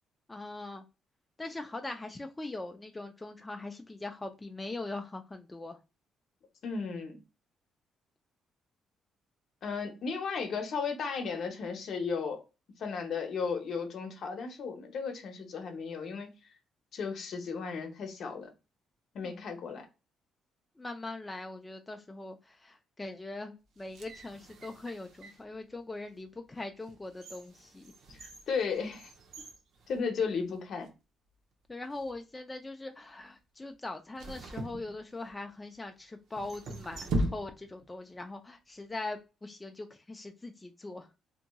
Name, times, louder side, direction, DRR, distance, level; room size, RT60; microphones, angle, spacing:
voice 1, 0.3-0.8 1.4-5.8 19.2-19.5 20.8-27.9 31.7-41.1, left 2 dB, 15° left, 0.4 m, -41 dB
voice 2, 6.6-7.2 9.6-12.4 12.8-16.3 16.9-18.5 19.1-19.9 28.1-29.1 29.9-30.9, left 5 dB, 65° left, 0.7 m, -35 dB
sound 1, 23.7-25.5 26.1-26.2 26.8-30.6 30.9-31.0 31.8-32.2 34.2-35.5 36.3-37.9 38.1-38.2, right 1 dB, 75° right, 0.6 m, -39 dB
2.8 x 2.7 x 2.2 m
cardioid pair, 90°, 0 cm